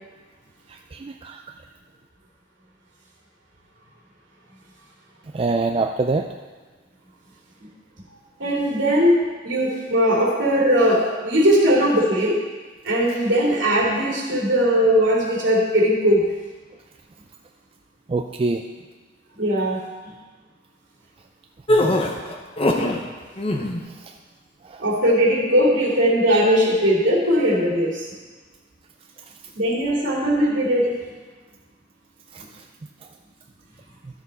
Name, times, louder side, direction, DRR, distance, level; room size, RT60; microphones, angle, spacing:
voice 1, 0.7-1.4 5.3-6.3 18.1-18.6 24.0-24.1 24.6-24.9 32.3-32.4, right 3 dB, 30° right, 4 dB, 0.3 m, -25 dB
voice 2, 8.4-9.2 9.4-12.4 12.8-16.3 19.4-20.1 24.8-28.1 29.6-30.9, equal, 70° right, -4 dB, 2.7 m, -19 dB
sound 1, 21.7-23.0 23.4-23.8, left 1 dB, 30° left, 0.8 m, -21 dB
12.5 x 6.5 x 4.1 m, 1.4 s
head